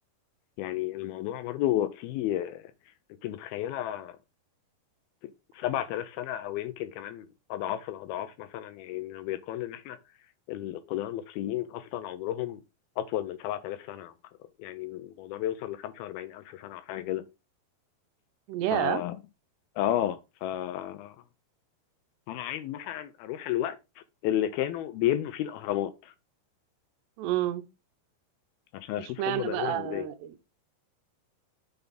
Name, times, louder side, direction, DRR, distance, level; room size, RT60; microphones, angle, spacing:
voice 1, 0.6-2.6 3.2-4.2 5.2-10.0 10.5-12.6 13.0-14.1 14.6-17.2 18.7-19.2 19.8-21.2 22.3-26.1 28.7-30.1, left 12 dB, 80° left, 2.3 m, -32 dB
voice 2, 18.5-19.0 27.2-27.7 29.0-30.3, right 13 dB, 90° right, 2.9 m, -30 dB
6.9 x 4.0 x 5.1 m
omnidirectional pair, 4.7 m